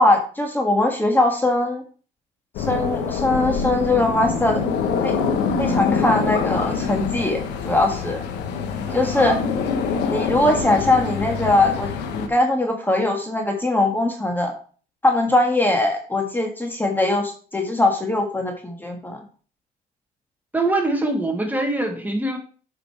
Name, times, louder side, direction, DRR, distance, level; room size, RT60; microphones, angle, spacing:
voice 1, 0.0-1.8 2.7-4.6 5.0-5.1 5.6-8.2 8.9-9.4 10.1-14.5 15.0-19.2, left 2 dB, 10° left, 3 dB, 1.6 m, -21 dB
sound 1, 2.5-12.3, left 5 dB, 85° left, 1.2 m, -25 dB
voice 2, 8.9-9.4 20.5-22.4, right 2 dB, 10° right, 2 dB, 1.6 m, -24 dB
7.6 x 5.2 x 4.7 m, 0.41 s
cardioid pair, 110°, 17 cm